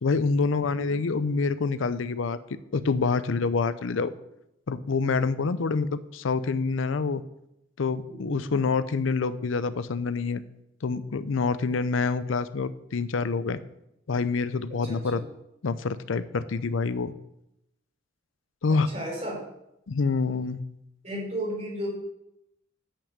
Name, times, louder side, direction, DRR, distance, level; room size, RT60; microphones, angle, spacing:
voice 1, 0.0-2.4 2.7-4.1 4.7-7.2 7.8-10.4 10.8-13.6 14.1-15.2 15.6-17.1 18.6-18.9 19.9-20.6, left 4 dB, 85° left, 15 dB, 0.5 m, -26 dB
voice 2, 0.6-1.0 8.1-8.6 14.8-15.2 18.7-19.4 21.0-21.9, equal, 35° right, -2 dB, 4.1 m, -35 dB
8.4 x 6.1 x 7.2 m, 0.83 s
head